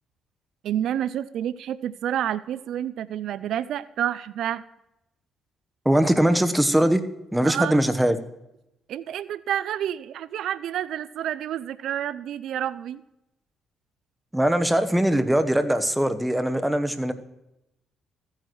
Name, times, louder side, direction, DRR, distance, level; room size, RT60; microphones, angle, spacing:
voice 1, 0.6-4.6 7.4-7.8 8.9-13.0, right 10 dB, 75° right, 16 dB, 0.4 m, -29 dB
voice 2, 5.8-7.0 7.3-8.2 14.3-17.1, right 1 dB, 5° right, 9 dB, 1.1 m, -21 dB
15.0 x 9.3 x 3.1 m, 0.88 s
cardioid pair, 75°, 0 cm